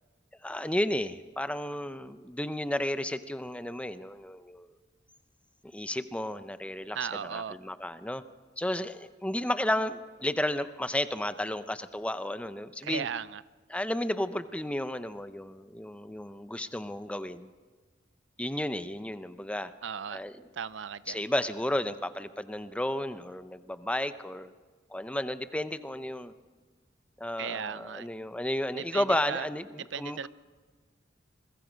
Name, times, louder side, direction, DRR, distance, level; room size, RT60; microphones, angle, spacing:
voice 1, 0.4-4.7 5.7-8.2 8.6-13.1 13.7-17.5 18.4-19.7 20.1-20.3 21.1-24.5 24.9-26.3 27.2-30.3, left 1 dB, 5° left, 11 dB, 0.7 m, -33 dB
voice 2, 6.9-7.6 12.8-13.4 19.8-20.2 20.5-21.2 27.4-28.1 28.7-29.5 29.9-30.3, right 7 dB, 85° right, 17 dB, 0.5 m, -36 dB
27.5 x 22.0 x 5.2 m, 1.4 s
head